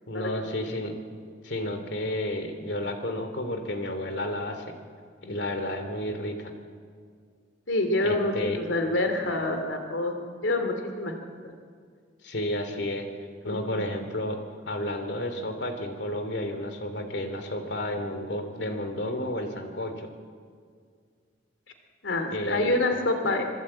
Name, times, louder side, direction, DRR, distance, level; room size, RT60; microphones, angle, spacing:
voice 1, 0.1-0.9 1.4-4.7 5.2-6.5 8.0-8.6 12.2-13.1 13.4-20.1 22.3-22.8, left 1 dB, 65° left, 7 dB, 2.9 m, -31 dB
voice 2, 7.7-10.1 10.4-11.2 13.4-13.8 22.0-23.5, left 2 dB, 90° left, 6 dB, 2.7 m, -26 dB
26.0 x 22.5 x 8.8 m, 2.1 s
head